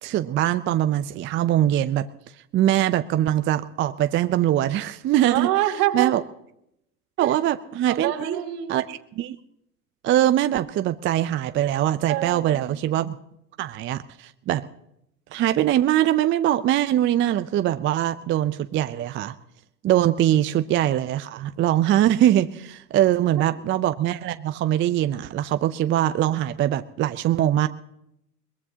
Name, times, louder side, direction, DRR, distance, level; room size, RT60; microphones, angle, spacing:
voice 1, 0.0-2.1 2.5-5.5 5.9-6.2 7.2-8.4 8.7-9.4 10.0-13.2 13.6-14.6 15.3-19.3 19.8-27.7, right 12 dB, 25° right, 11 dB, 0.5 m, -22 dB
voice 2, 5.3-6.2 7.2-7.3 7.9-8.9 12.1-12.8, right 13 dB, 70° right, 2 dB, 2.8 m, -26 dB
22.0 x 20.5 x 2.8 m, 0.77 s
hypercardioid pair, 90°, 49 cm